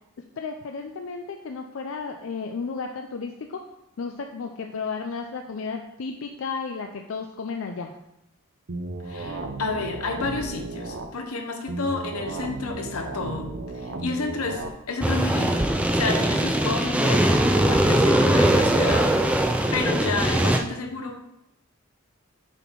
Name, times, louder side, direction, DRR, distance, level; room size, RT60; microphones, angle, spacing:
voice 1, 0.4-3.6 4.0-8.0, left 5 dB, 65° left, 4 dB, 0.4 m, -33 dB
sound 1, 8.7-11.1 11.7-14.7, right 2 dB, 55° right, 0.6 m, -34 dB
voice 2, 9.0-13.5 13.7-21.2, left 3 dB, 90° left, 4 dB, 1.0 m, -30 dB
sound 2, 15.0-20.6, right 1 dB, 5° right, 0.3 m, -21 dB
6.7 x 4.2 x 4.6 m, 0.86 s
head